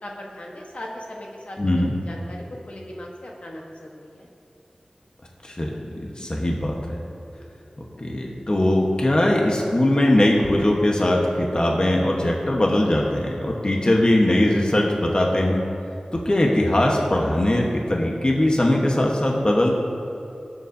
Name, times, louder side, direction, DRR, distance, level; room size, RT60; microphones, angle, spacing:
voice 1, 0.0-4.3, left 1 dB, 60° left, -2 dB, 1.3 m, -38 dB
voice 2, 1.6-1.9 5.4-7.0 8.0-15.6 16.1-19.7, left 1 dB, 40° left, -1 dB, 1.2 m, -20 dB
19.5 x 7.0 x 2.8 m, 2.7 s
wide cardioid pair, 60°, 2 cm